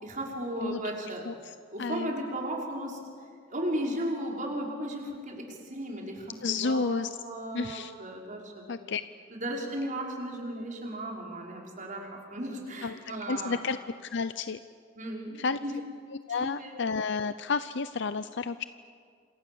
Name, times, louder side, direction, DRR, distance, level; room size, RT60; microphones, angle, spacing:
voice 1, 0.0-1.2 1.7-3.0 3.5-8.8 9.3-13.6 15.0-15.7 16.3-16.8, right 1 dB, 40° right, -1 dB, 5.4 m, -35 dB
voice 2, 1.3-2.1 6.4-7.1 7.5-7.9 8.7-9.0 12.8-13.0 13.3-13.8 14.1-14.6 15.4-15.6 16.3-18.6, left 4 dB, 65° left, 12 dB, 0.6 m, -31 dB
29.0 x 27.0 x 7.1 m, 2.1 s
head